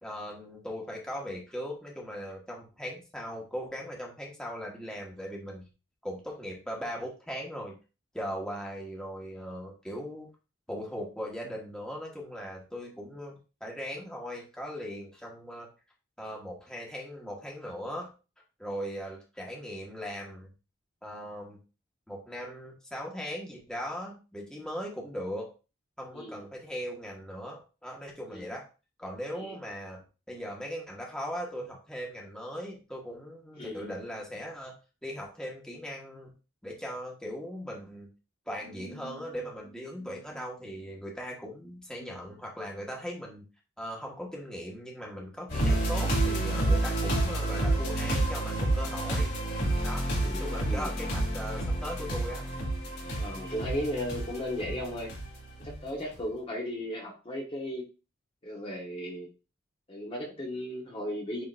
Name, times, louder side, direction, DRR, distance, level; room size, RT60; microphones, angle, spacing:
voice 1, 0.0-5.7 6.0-7.8 8.1-10.3 10.7-15.7 16.2-18.1 18.6-20.5 21.0-21.6 22.1-25.5 26.0-28.7 29.0-34.7 35.0-36.3 36.6-38.1 38.5-43.4 43.8-49.3 49.8-52.5, equal, 5° left, -2 dB, 1.4 m, -39 dB
voice 2, 26.1-26.5 28.3-28.5 29.3-29.6 33.6-33.9 50.2-50.9 53.2-55.1 55.6-57.9 58.4-59.3 59.9-61.4, equal, 25° left, -1 dB, 1.2 m, -36 dB
sound 1, 45.5-55.8 56.2-56.3, right 1 dB, 55° left, 3.2 m, -29 dB
9.6 x 3.8 x 2.5 m, 0.32 s
head